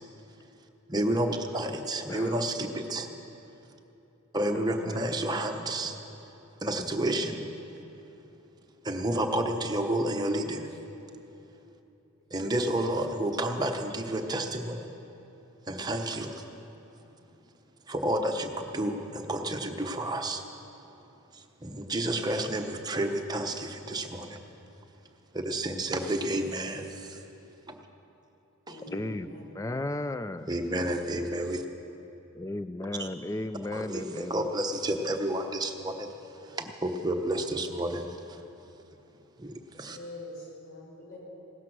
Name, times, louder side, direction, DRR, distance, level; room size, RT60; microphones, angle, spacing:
voice 1, 0.9-3.1 4.3-5.9 6.6-7.4 8.9-10.6 12.3-14.8 15.7-16.3 17.9-18.5 18.7-20.4 21.6-24.4 25.3-26.8 30.5-31.6 33.0-33.1 33.7-36.1 36.8-38.0 39.4-39.5 39.8-40.0, right 1 dB, 20° right, 4 dB, 0.9 m, -30 dB
voice 2, 2.1-2.4 4.5-5.1 28.9-29.3 29.5-30.6 32.3-34.5 36.6-36.7, left 2 dB, 15° left, 12 dB, 0.3 m, -35 dB
voice 3, 7.2-7.5 28.7-29.4 39.8-41.2, left 1 dB, 65° left, -3 dB, 4.7 m, -45 dB
16.5 x 12.5 x 6.1 m, 2.9 s
head